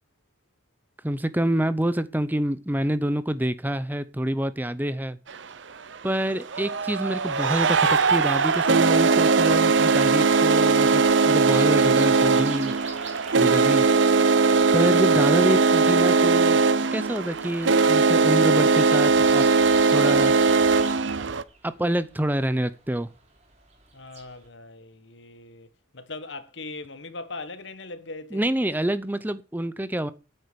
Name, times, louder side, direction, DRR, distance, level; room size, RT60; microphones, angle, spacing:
voice 1, 1.0-5.2 6.0-12.8 13.3-13.8 14.3-16.7 16.9-19.4 19.9-20.6 21.6-23.1 28.3-30.1, right 1 dB, 10° right, 0.7 m, -27 dB
sound 1, 5.3-5.4 6.4-21.4, right 4 dB, 65° right, 0.7 m, -20 dB
sound 2, 11.0-24.5, right 5 dB, 35° right, 3.9 m, -46 dB
voice 2, 23.9-28.4, left 3 dB, 65° left, 1.5 m, -40 dB
9.8 x 9.0 x 6.9 m
head